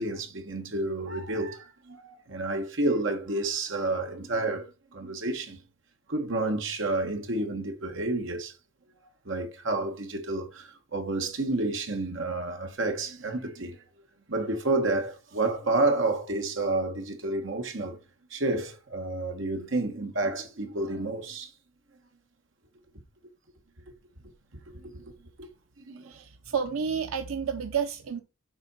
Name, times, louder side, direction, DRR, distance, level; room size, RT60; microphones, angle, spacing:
voice 1, 0.0-5.6 6.1-8.5 9.2-13.8 14.3-18.0 18.3-21.5 24.7-25.1 25.4-25.5 25.9-26.1, right 2 dB, 60° right, 1.6 m, -30 dB
voice 2, 26.0-28.2, right 6 dB, 90° right, 0.7 m, -30 dB
7.5 x 4.3 x 5.6 m
head